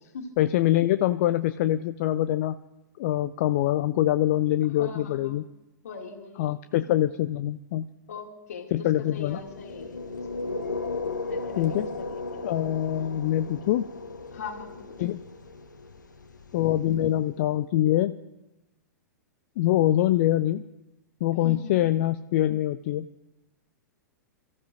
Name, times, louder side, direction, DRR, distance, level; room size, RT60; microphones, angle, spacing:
voice 1, 0.4-2.5 3.0-5.4 6.4-7.9 8.7-9.4 11.6-11.9 12.4-13.9 15.0-15.2 16.5-18.2 19.6-20.6 21.2-23.1, left 13 dB, 40° left, 12 dB, 0.4 m, -24 dB
voice 2, 4.8-5.4 5.8-6.8 8.1-10.0 10.3-10.5 11.3-12.6 14.3-15.0 21.4-21.7, left 5 dB, 55° left, 1 dB, 2.3 m, -41 dB
sound 1, 9.2-17.3, left 3 dB, 70° left, 1.3 m, -36 dB
29.0 x 14.5 x 2.5 m, 0.97 s
figure-of-eight pair, 105°, 10 cm